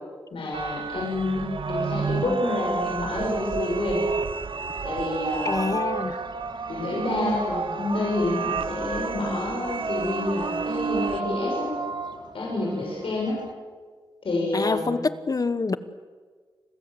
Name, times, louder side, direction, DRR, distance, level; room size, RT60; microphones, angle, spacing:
voice 1, 0.3-4.0 4.8-5.6 6.7-11.7 12.3-13.4 14.2-15.0, left 2 dB, 85° left, -3 dB, 7.3 m, -28 dB
sound 1, 0.5-11.2, right 6 dB, 85° right, 1.0 m, -32 dB
sound 2, 1.4-13.5, right 3 dB, 55° right, 1.8 m, -34 dB
voice 2, 5.4-6.2 14.5-15.8, left 4 dB, 45° left, 13 dB, 1.3 m, -26 dB
30.0 x 22.0 x 7.9 m, 1.5 s
wide cardioid pair, 105°, 9 cm